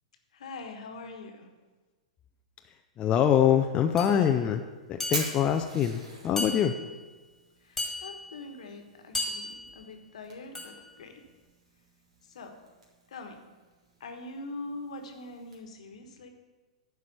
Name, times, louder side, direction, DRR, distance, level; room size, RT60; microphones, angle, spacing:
voice 1, 0.3-1.5 7.6-11.3 12.2-12.5 13.1-13.4 14.0-16.3, left 2 dB, 65° left, 5 dB, 1.4 m, -43 dB
voice 2, 3.0-4.6 4.9-6.8, left 9 dB, 25° left, 6 dB, 0.5 m, -24 dB
sound 1, 4.0-4.2 5.0-5.6 6.4-7.0 7.8-8.4 9.1-9.8 10.5-10.9, left 2 dB, 5° left, 2.1 m, -35 dB
Fire, 4.1-15.6, right 2 dB, 70° right, 2.5 m, -45 dB
11.0 x 4.8 x 6.9 m, 1.3 s
figure-of-eight pair, 110°, 4 cm